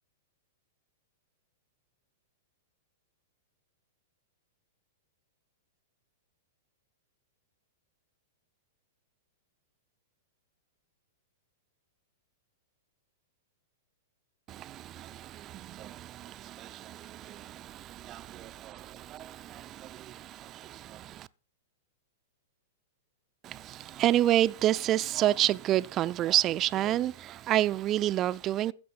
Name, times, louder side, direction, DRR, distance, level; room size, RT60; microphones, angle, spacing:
voice 1, 14.5-21.3 23.4-28.7, right 13 dB, 35° right, 0.5 m, -29 dB
15.0 x 6.9 x 5.3 m
figure-of-eight pair, 105°, 0 cm